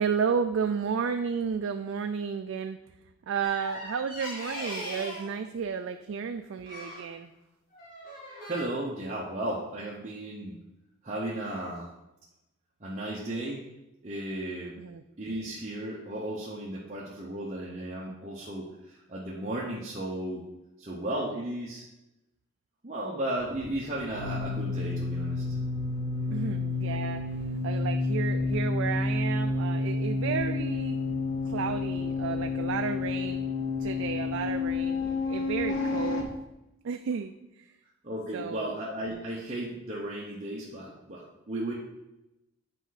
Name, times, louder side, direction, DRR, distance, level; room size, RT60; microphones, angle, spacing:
voice 1, 0.0-2.8 3.3-7.3 14.8-15.0 26.3-27.3 27.6-31.0 31.5-33.5 33.8-36.3 36.8-37.7 38.3-38.7, right 6 dB, 70° right, 7 dB, 0.4 m, -32 dB
sound 1, 3.4-5.3 6.7-7.1 7.7-8.6, equal, 40° left, 1.8 m, -39 dB
voice 2, 8.4-10.6 11.0-11.9 12.8-13.6 14.0-14.7 15.2-18.7 19.1-20.4 20.8-21.8 22.8-25.4 38.0-41.7, right 1 dB, 35° right, -5 dB, 1.0 m, -34 dB
sound 2, 23.4-36.2, left 3 dB, 75° left, 1.3 m, -30 dB
8.9 x 4.7 x 4.0 m, 0.94 s
head